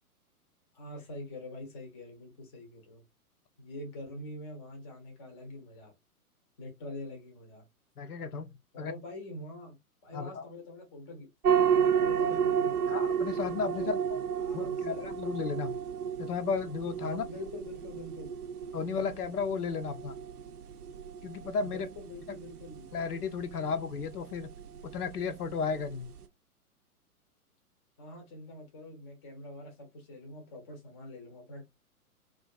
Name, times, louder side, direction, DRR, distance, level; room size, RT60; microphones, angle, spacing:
voice 1, 0.7-3.0 3.6-5.9 6.6-7.6 8.7-13.1 13.7-13.9 14.4-15.1 17.0-18.4 18.8-19.1 21.6-22.9 28.0-31.6, left 1 dB, 20° left, 0.5 m, -45 dB
voice 2, 8.0-8.5 8.8-8.9 10.1-10.5 12.9-14.0 14.5-15.8 16.2-17.2 18.7-20.2 21.2-21.9 22.9-24.5 24.8-26.1, left 5 dB, 80° left, 0.5 m, -34 dB
sound 1, 11.4-26.2, right 8 dB, 80° right, 0.6 m, -32 dB
2.4 x 2.3 x 2.3 m
figure-of-eight pair, 120°, 45 cm